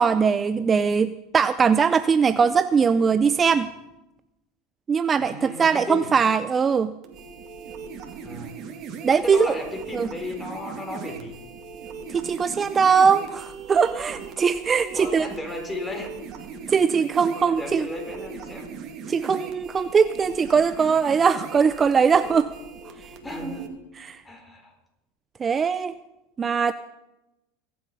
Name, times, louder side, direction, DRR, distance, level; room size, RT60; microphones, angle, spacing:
voice 1, 0.0-3.7 4.9-6.9 9.0-9.5 9.9-10.1 12.1-15.3 16.7-17.9 19.1-22.5 24.1-24.2 25.4-25.9 26.4-26.7, right 6 dB, 25° right, 13 dB, 0.5 m, -21 dB
voice 2, 5.2-6.1 8.2-8.6 9.2-11.4 14.9-16.4 17.2-18.7 23.2-23.7 24.2-24.7, left 1 dB, 15° left, 3 dB, 4.2 m, -34 dB
sound 1, 7.0-23.7, right 6 dB, 45° right, 2.3 m, -39 dB
23.0 x 7.8 x 5.4 m, 0.95 s
hypercardioid pair, 95°, 0 cm